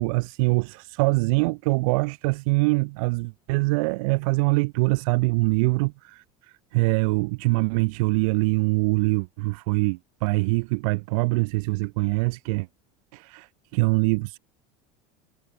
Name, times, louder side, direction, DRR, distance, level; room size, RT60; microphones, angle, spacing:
voice 1, 0.0-6.2 6.7-12.7 13.1-14.4, right 26 dB, 75° right, 1.0 m, -24 dB
cardioid pair, 170°, 18 cm